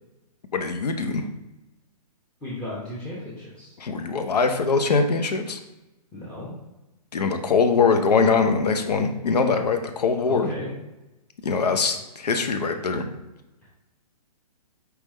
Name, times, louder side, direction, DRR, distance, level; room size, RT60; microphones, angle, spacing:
voice 1, 0.5-1.3 3.8-5.6 7.1-10.5 11.4-13.0, left 4 dB, 80° left, 6 dB, 0.7 m, -22 dB
voice 2, 2.4-3.8 6.1-6.5 10.3-10.7, left 1 dB, 5° left, -8 dB, 0.8 m, -35 dB
4.7 x 3.4 x 3.1 m, 1.0 s
hypercardioid pair, 140°, 20 cm